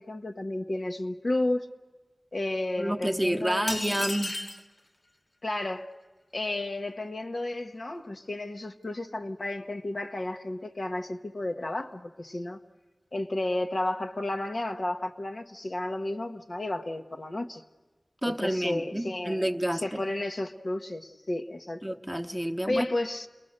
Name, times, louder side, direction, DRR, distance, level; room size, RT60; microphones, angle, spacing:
voice 1, 0.0-1.7 2.3-4.0 5.4-5.9 6.3-12.6 13.1-17.6 18.2-21.8 22.7-23.3, left 1 dB, 65° left, 1.1 m, -32 dB
voice 2, 2.8-4.3 18.2-20.0 21.8-22.8, equal, 5° right, 1.0 m, -29 dB
sound 1, 3.7-4.7, left 1 dB, 40° left, 1.1 m, -33 dB
29.0 x 21.0 x 6.6 m
wide cardioid pair, 55°, 0 cm